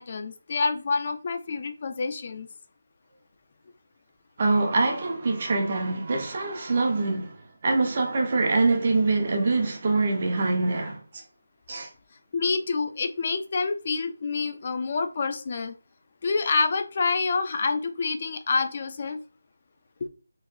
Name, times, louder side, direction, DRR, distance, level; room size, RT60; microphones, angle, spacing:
voice 1, 0.0-2.5 12.3-15.7 16.2-19.2, left 4 dB, 40° left, 0.5 m, -27 dB
voice 2, 4.4-7.3 7.6-11.2 11.7-11.9, right 3 dB, 40° right, 1.0 m, -24 dB
4.4 x 3.4 x 2.6 m
figure-of-eight pair, 165°, 0 cm